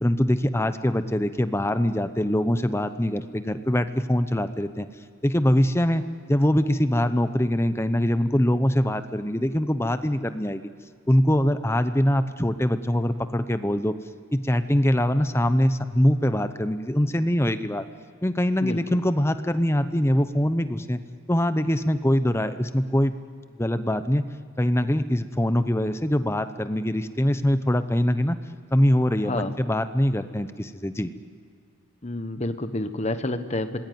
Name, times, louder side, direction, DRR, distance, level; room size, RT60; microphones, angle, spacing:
voice 1, 0.0-4.9 5.2-6.0 6.3-10.7 11.1-13.9 14.3-17.8 18.2-21.0 21.3-23.1 23.6-24.2 24.6-28.4 28.7-31.1, equal, 10° left, 11 dB, 0.7 m, -23 dB
voice 2, 32.0-33.8, left 1 dB, 30° left, 9 dB, 1.1 m, -28 dB
26.5 x 20.0 x 9.4 m, 2.2 s
head